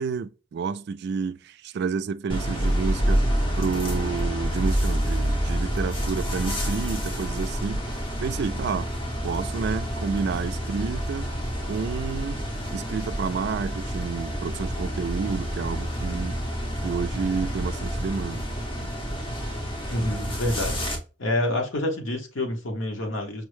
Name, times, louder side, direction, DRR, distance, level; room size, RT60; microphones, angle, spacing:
voice 1, 0.0-3.2 3.6-7.8 8.2-8.9 9.2-11.3 11.6-12.5 12.7-16.4 16.8-18.4, right 5 dB, 60° right, 0.3 m, -30 dB
sound 1, 2.3-21.0, equal, 30° left, 0.9 m, -28 dB
voice 2, 19.9-20.8 21.2-23.5, left 1 dB, 85° left, 1.1 m, -27 dB
5.3 x 2.1 x 3.1 m
head